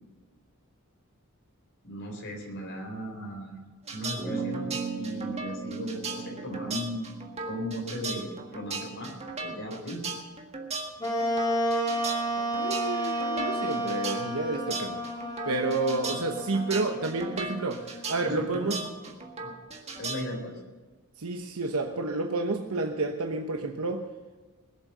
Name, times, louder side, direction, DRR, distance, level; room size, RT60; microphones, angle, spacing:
voice 1, 1.8-3.6 3.9-7.0 7.5-9.1 9.4-10.0 18.2-19.1 19.4-19.5 20.0-20.6, equal, 60° left, 2 dB, 4.0 m, -37 dB
sound 1, 3.9-20.2, right 4 dB, 30° right, 1.6 m, -37 dB
sound 2, 4.2-9.0, right 4 dB, ahead, 1.9 m, -37 dB
Wind instrument woodwind instrument, 11.0-18.4, equal, 20° left, 2.9 m, -31 dB
voice 2, 12.5-15.0 15.4-18.8 21.2-24.1, right 3 dB, 75° right, 4 dB, 1.0 m, -30 dB
21.0 x 7.6 x 6.8 m, 1.3 s
head